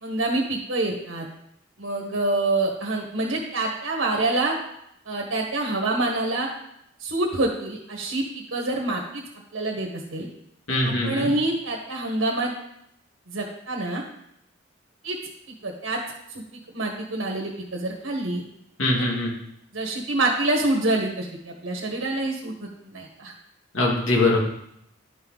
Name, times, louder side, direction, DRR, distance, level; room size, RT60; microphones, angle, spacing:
voice 1, 0.0-1.3 1.8-4.5 5.0-6.5 7.0-9.2 9.5-10.3 10.8-12.5 13.3-14.0 15.0-15.2 15.6-16.0 16.3-16.4 16.7-18.4 19.0-19.1 19.7-23.3, right 2 dB, 80° right, 1 dB, 1.4 m, -26 dB
voice 2, 10.7-11.3 18.8-19.3 23.7-24.4, left 2 dB, 85° left, -1 dB, 2.4 m, -22 dB
11.5 x 5.6 x 4.0 m, 0.76 s
head